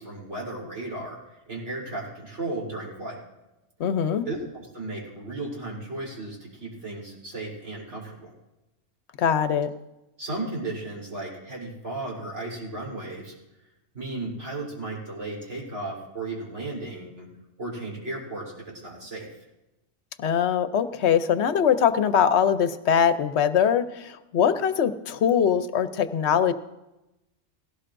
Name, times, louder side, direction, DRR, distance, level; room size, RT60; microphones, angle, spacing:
voice 1, 0.0-3.2 4.3-8.3 10.2-13.3 13.9-17.3 17.6-19.3, right 2 dB, 65° right, -3 dB, 4.1 m, -35 dB
voice 2, 3.8-4.3 9.2-9.7 20.2-26.5, left 8 dB, 65° left, 11 dB, 0.9 m, -22 dB
18.0 x 17.0 x 2.6 m, 0.97 s
omnidirectional pair, 1.3 m